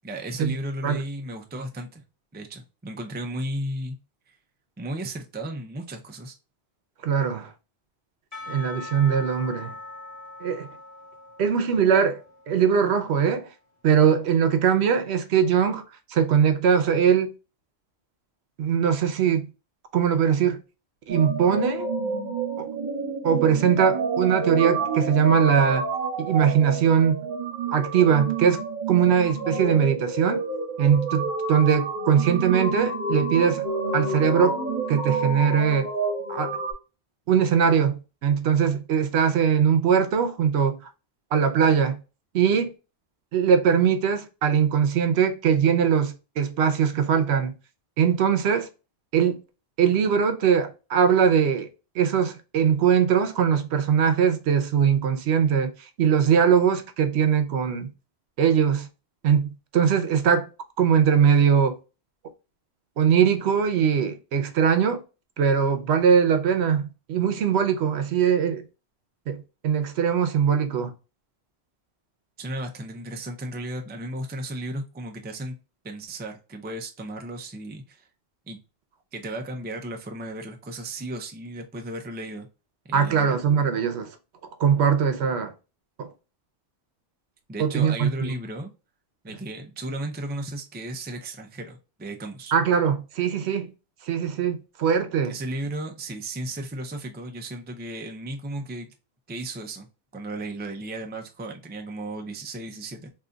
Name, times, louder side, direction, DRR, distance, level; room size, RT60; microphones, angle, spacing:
voice 1, 0.0-2.0 2.3-4.0 4.3-4.4 4.8-6.3 72.4-75.6 75.8-78.1 78.5-78.6 79.1-82.5 82.8-83.4 87.5-88.7 89.2-92.5 95.3-98.9 99.3-103.1, right 1 dB, 15° right, 0.3 m, -34 dB
voice 2, 7.0-7.5 8.5-9.7 10.4-10.7 11.4-12.2 12.5-13.5 13.8-15.8 16.1-17.3 18.6-19.5 19.9-20.6 21.1-21.9 22.6-22.7 23.2-25.9 26.2-27.3 27.7-28.6 28.9-30.4 30.8-33.7 33.9-34.5 34.9-35.9 36.3-36.6 37.3-40.8 41.3-42.0 42.3-42.7 43.3-47.5 48.0-48.7 49.1-49.4 49.8-51.7 51.9-57.9 58.4-58.9 59.2-60.5 60.8-61.8 63.0-65.0 65.4-68.6 69.3-70.9 82.9-84.2 84.6-85.5 86.0-86.1 87.6-88.3 92.5-93.7 94.0-95.4, right 7 dB, 80° right, 0.9 m, -21 dB
Percussion / Church bell, 8.3-13.4, left 3 dB, 35° left, 1.2 m, -42 dB
sound 1, 21.1-36.7, right 3 dB, 50° right, 1.1 m, -29 dB
3.8 x 2.7 x 2.2 m
omnidirectional pair, 1.1 m